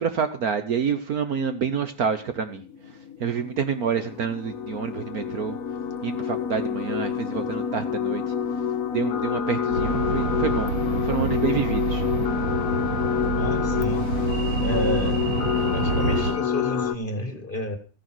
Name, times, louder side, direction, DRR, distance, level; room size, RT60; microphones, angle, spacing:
voice 1, 0.0-2.6 3.2-5.6 6.0-8.2 8.9-10.7 11.0-12.0, right 7 dB, 55° right, 9 dB, 1.3 m, -27 dB
sound 1, 2.0-16.9, left 7 dB, 55° left, 1.1 m, -28 dB
sound 2, 9.7-16.3, right 4 dB, 80° right, 7.4 m, -28 dB
voice 2, 13.4-14.1 14.6-15.3 15.7-17.8, left 1 dB, 30° left, 8 dB, 1.6 m, -30 dB
14.0 x 10.5 x 6.1 m, 0.36 s
omnidirectional pair, 2.1 m